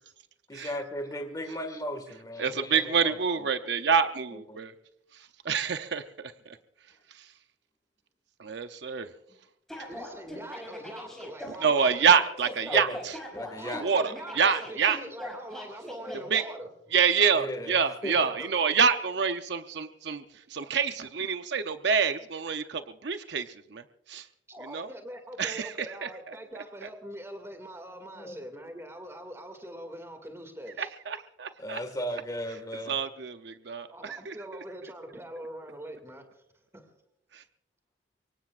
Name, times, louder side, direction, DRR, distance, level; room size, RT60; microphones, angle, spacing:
voice 1, 0.5-3.2 3.6-3.7 4.5-4.7 12.7-13.0 13.3-13.8 17.3-18.3 28.2-28.4 31.6-33.0, equal, 20° left, 5 dB, 1.8 m, -36 dB
voice 2, 2.4-4.7 5.1-6.0 6.5-6.6 7.1-7.3 8.4-9.1 11.6-13.1 13.7-15.0 16.3-16.4 16.9-20.2 20.5-24.3 24.7-24.9 25.4-26.1 30.8-31.8 32.9-34.3 37.3-37.4, right 6 dB, 60° right, 9 dB, 0.7 m, -27 dB
sound 1, 9.7-16.4, left 1 dB, ahead, 5.4 m, -41 dB
voice 3, 9.9-12.1 13.6-16.7 24.5-30.9 33.9-36.9, right 1 dB, 15° right, 5 dB, 2.2 m, -43 dB
24.5 x 23.5 x 2.5 m, 0.82 s
head